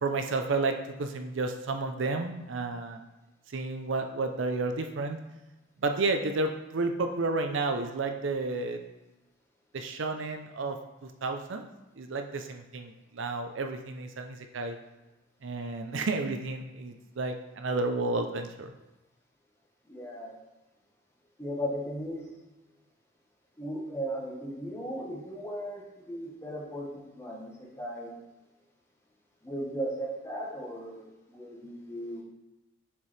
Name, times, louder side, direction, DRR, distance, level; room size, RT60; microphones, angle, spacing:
voice 1, 0.0-3.0 3.5-5.2 5.8-8.8 9.7-10.8 11.0-11.6 12.0-14.8 15.4-18.7, right 3 dB, 75° right, 5 dB, 0.6 m, -31 dB
voice 2, 19.9-20.4 21.4-22.3 23.6-28.1 29.4-32.2, equal, 15° left, -2 dB, 1.1 m, -37 dB
6.8 x 4.6 x 3.3 m, 1.0 s
head